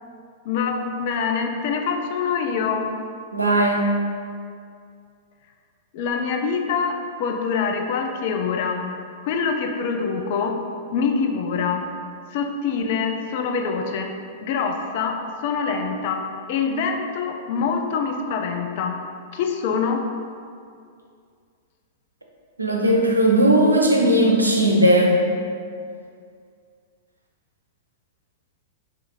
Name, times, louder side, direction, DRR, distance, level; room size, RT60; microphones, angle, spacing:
voice 1, 0.5-2.9 5.9-8.9 9.2-10.6 10.9-11.9 12.3-14.1 14.4-15.2 15.4-16.2 16.5-18.9 19.3-20.0, left 5 dB, 50° left, 3 dB, 0.3 m, -25 dB
voice 2, 3.3-3.9 22.6-25.2, right 1 dB, 85° right, -1 dB, 0.4 m, -17 dB
2.5 x 2.4 x 4.1 m, 2.3 s
figure-of-eight pair, 100°, 0 cm